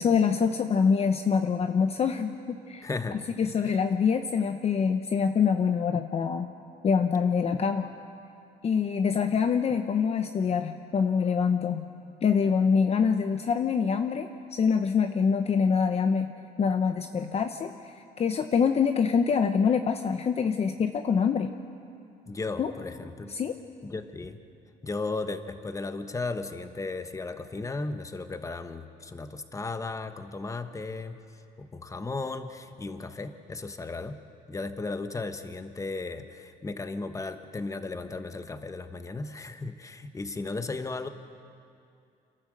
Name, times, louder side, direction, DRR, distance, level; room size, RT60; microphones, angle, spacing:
voice 1, 0.0-2.9 3.4-6.5 6.8-7.9 8.6-11.9 12.2-16.3 16.6-21.5 22.6-22.7 23.3-23.6, left 6 dB, 40° left, 7 dB, 0.8 m, -25 dB
voice 2, 2.8-3.2 3.6-3.7 22.2-23.4 23.8-24.4 24.8-31.2 31.6-34.2 34.5-41.1, left 3 dB, 20° left, 9 dB, 1.2 m, -35 dB
27.5 x 12.5 x 7.7 m, 2.5 s
cardioid pair, 110°, 17 cm